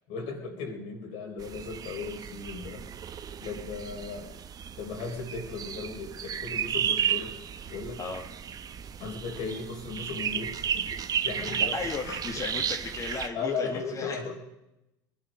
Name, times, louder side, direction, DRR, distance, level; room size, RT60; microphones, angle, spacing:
voice 1, 0.1-3.1 3.4-4.3 4.8-8.0 9.0-12.2 13.3-14.4, left 4 dB, 65° left, 2 dB, 4.0 m, -37 dB
sound 1, 1.4-13.3, right 9 dB, 40° right, 0.9 m, -33 dB
voice 2, 11.7-14.2, left 4 dB, 30° left, 2 dB, 1.9 m, -35 dB
21.5 x 11.5 x 5.2 m, 0.92 s
hypercardioid pair, 80°, 10 cm